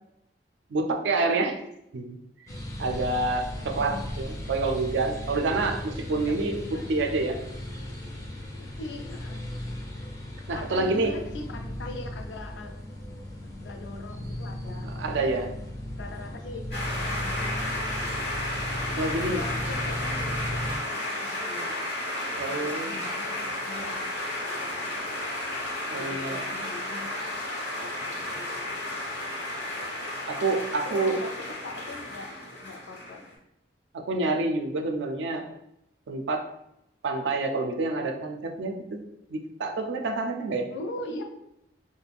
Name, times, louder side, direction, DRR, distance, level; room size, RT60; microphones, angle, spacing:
voice 1, 0.7-1.6 1.9-2.2 2.8-7.4 10.5-11.1 14.8-15.6 19.0-19.4 22.3-23.0 25.9-26.4 30.3-31.2 33.9-35.5 36.1-36.4 37.0-39.0 39.3-40.7, right 3 dB, 90° right, 4 dB, 0.4 m, -28 dB
sound 1, 2.5-20.8, left 1 dB, 15° left, 0.4 m, -36 dB
voice 2, 3.5-4.1 5.6-5.8 6.1-7.0 8.6-9.5 10.5-12.8 13.6-15.2 16.0-16.6 17.1-18.1 18.9-21.8 22.5-24.2 24.4-25.0 26.0-27.5 27.8-28.8 30.8-32.3 32.6-33.3 40.7-41.2, left 2 dB, 85° left, 4 dB, 0.4 m, -41 dB
sound 2, 16.7-33.3, left 1 dB, 65° left, 0.9 m, -33 dB
2.4 x 2.1 x 3.3 m, 0.82 s
head